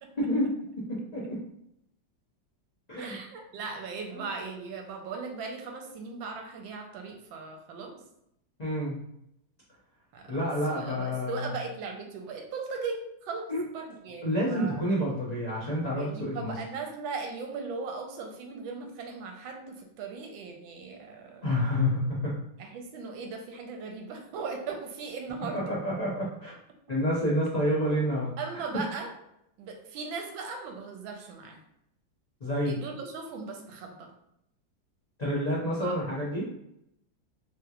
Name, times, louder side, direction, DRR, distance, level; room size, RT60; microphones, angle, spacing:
voice 1, 0.2-1.4 2.9-3.2 4.1-4.3 8.6-9.0 10.3-11.5 13.5-13.6 14.2-16.6 21.4-22.3 25.5-26.5 26.9-28.3 32.4-32.8 35.2-36.5, equal, 90° left, -9 dB, 0.3 m, -29 dB
voice 2, 3.0-8.0 10.1-14.8 15.9-21.4 22.6-25.7 28.4-29.1 29.6-31.6 32.6-34.1 35.8-35.9, right 4 dB, 80° right, 3 dB, 1.3 m, -38 dB
3.4 x 2.8 x 2.4 m, 0.79 s
omnidirectional pair, 2.1 m